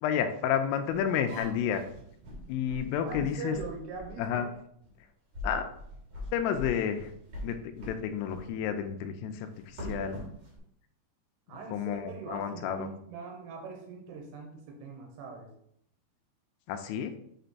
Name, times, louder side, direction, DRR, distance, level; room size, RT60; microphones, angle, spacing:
voice 1, 0.0-1.8 2.5-3.6 4.2-4.5 5.4-5.7 6.3-7.1 7.4-10.2 11.7-12.9 16.7-17.1, left 8 dB, 85° left, 7 dB, 3.0 m, -31 dB
sound 1, 0.9-4.2 4.8-5.0 5.3-8.0 8.3-8.5 9.5-10.6, equal, 60° right, 1.4 m, -42 dB
voice 2, 3.0-4.5 11.5-15.5, right 4 dB, 80° right, 2 dB, 3.4 m, -42 dB
8.2 x 3.4 x 4.0 m, 0.71 s
omnidirectional pair, 5.9 m